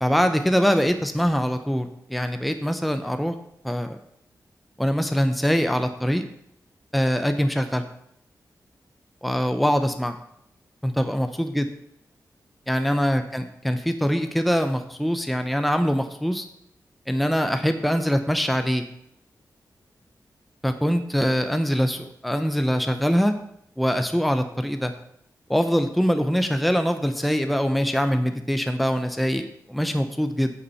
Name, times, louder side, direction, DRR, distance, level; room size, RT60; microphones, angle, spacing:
voice 1, 0.0-3.4 3.6-4.0 4.8-6.2 6.9-7.8 9.2-10.2 10.8-11.7 12.7-16.5 17.1-18.8 20.6-23.4 23.8-24.9 25.5-30.5, equal, ahead, 8 dB, 0.6 m, -23 dB
8.2 x 7.0 x 5.6 m, 0.75 s
wide cardioid pair, 110°, 7 cm